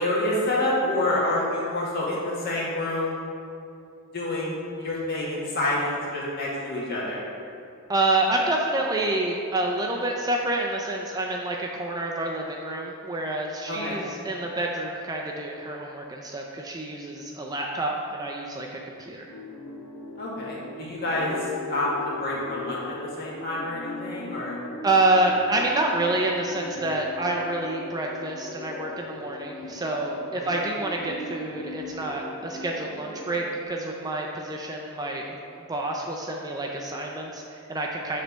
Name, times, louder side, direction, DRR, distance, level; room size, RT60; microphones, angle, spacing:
voice 1, 0.0-3.2 4.1-7.3 13.7-14.0 20.2-21.3 21.7-24.6 30.5-30.7, left 1 dB, 45° left, -6 dB, 1.7 m, -28 dB
voice 2, 7.9-19.3 24.8-35.4 35.7-38.2, right 2 dB, 15° right, 0 dB, 0.4 m, -28 dB
sound 1, 19.3-33.7, left 2 dB, 75° left, 1.0 m, -39 dB
7.9 x 3.3 x 6.1 m, 2.6 s
head